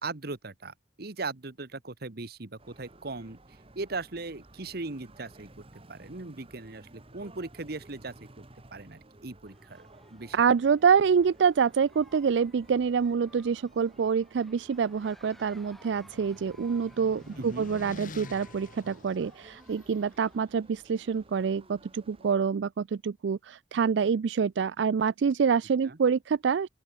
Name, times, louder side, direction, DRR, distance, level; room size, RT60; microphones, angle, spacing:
voice 1, 0.0-3.4 3.7-5.5 5.9-10.4 17.4-17.7 25.8-26.0, right 3 dB, 60° right, 1.4 m, -39 dB
sound 1, 2.6-22.3, right 2 dB, 35° right, 1.7 m, -55 dB
sound 2, 9.5-20.5, equal, ahead, 2.3 m, -59 dB
voice 2, 10.3-26.7, right 6 dB, 85° right, 0.4 m, -26 dB
sound 3, 14.8-20.0, left 2 dB, 50° left, 3.1 m, -48 dB
open air
head